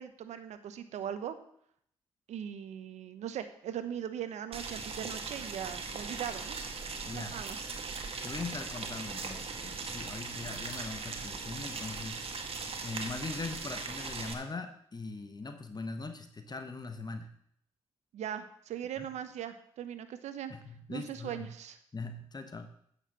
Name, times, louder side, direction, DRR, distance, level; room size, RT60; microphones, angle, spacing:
voice 1, 0.0-1.4 2.3-6.6 7.1-7.6 18.1-20.5 20.9-21.8, right 9 dB, 75° right, 11 dB, 1.0 m, -39 dB
Boiling, 4.5-14.3, right 4 dB, 55° right, 1.7 m, -39 dB
voice 2, 8.2-12.6 12.8-17.3 19.0-19.1 20.5-21.5 21.9-22.7, left 3 dB, 35° left, 7 dB, 1.2 m, -41 dB
9.2 x 6.6 x 6.2 m, 0.67 s
hypercardioid pair, 45°, 12 cm